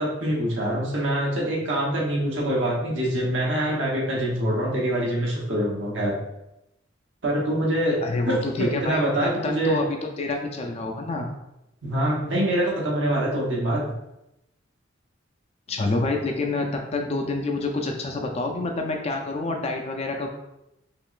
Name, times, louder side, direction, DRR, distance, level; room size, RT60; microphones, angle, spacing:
voice 1, 0.0-6.2 7.2-8.0 8.3-9.8 11.8-13.8, right 1 dB, 70° right, -4 dB, 1.0 m, -25 dB
voice 2, 8.0-11.3 15.7-20.3, left 2 dB, 30° left, 3 dB, 0.3 m, -27 dB
3.7 x 2.9 x 2.4 m, 0.88 s
head